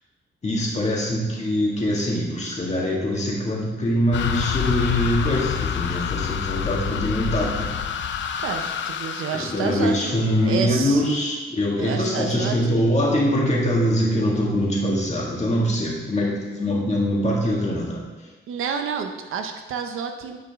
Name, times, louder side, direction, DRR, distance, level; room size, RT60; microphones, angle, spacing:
voice 1, 0.4-7.7 8.3-8.4 9.3-18.0, equal, 35° left, -3 dB, 1.9 m, -23 dB
sound 1, 4.1-10.5, left 8 dB, 65° left, 0.5 m, -27 dB
voice 2, 8.4-11.1 11.8-12.9 18.5-20.4, right 6 dB, 90° right, 5 dB, 0.7 m, -30 dB
9.2 x 5.0 x 3.6 m, 1.2 s
cardioid pair, 90°, 21 cm